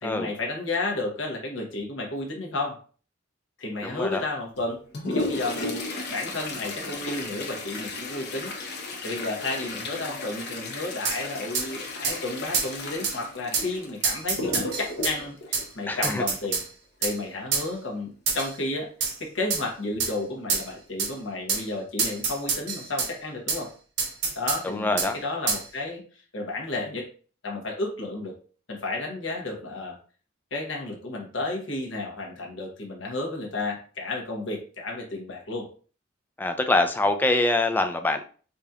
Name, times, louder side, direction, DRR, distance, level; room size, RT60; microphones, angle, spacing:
voice 1, 0.0-2.8 3.6-4.8 5.1-8.5 9.0-16.6 17.0-23.7 24.3-27.1 27.4-28.4 28.7-30.0 30.5-35.7, left 2 dB, 70° left, 0 dB, 1.1 m, -32 dB
voice 2, 3.8-4.3 15.9-16.2 24.6-25.2 36.4-38.2, left 2 dB, 10° left, 6 dB, 0.3 m, -24 dB
Toilet flush, 4.5-16.5 18.4-18.5 18.8-18.9 19.7-19.8 20.5-20.7 21.1-21.3, left 2 dB, 55° left, 0.9 m, -34 dB
sound 1, 11.0-11.2 11.5-11.7 12.0-12.2 12.5-12.7 13.0-13.2 13.5-13.7 14.0-15.2 15.5-15.7 16.0-16.7 17.0-17.2 17.5-17.7 18.3-18.5 19.0-19.2 19.5-19.6 20.0-20.1 20.5-20.7 21.0-21.1 21.5-21.6 22.0-23.1 23.5-23.6 24.0-24.6 25.0-25.1 25.5-25.6, right 5 dB, 65° right, 0.9 m, -27 dB
5.0 x 2.8 x 2.4 m, 0.40 s
head